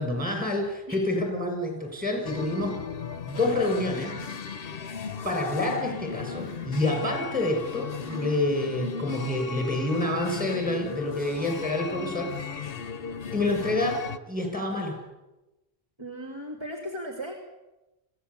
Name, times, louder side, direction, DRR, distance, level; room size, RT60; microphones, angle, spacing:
voice 1, 0.0-2.8 3.3-4.2 5.2-12.3 13.3-14.0 14.3-15.0, left 2 dB, 10° right, 2 dB, 6.6 m, -28 dB
sound 1, 2.2-14.2, left 6 dB, 60° left, 1.1 m, -36 dB
voice 2, 16.0-17.3, equal, 25° right, -1 dB, 3.0 m, -36 dB
25.0 x 16.5 x 8.4 m, 1.0 s
omnidirectional pair, 1.1 m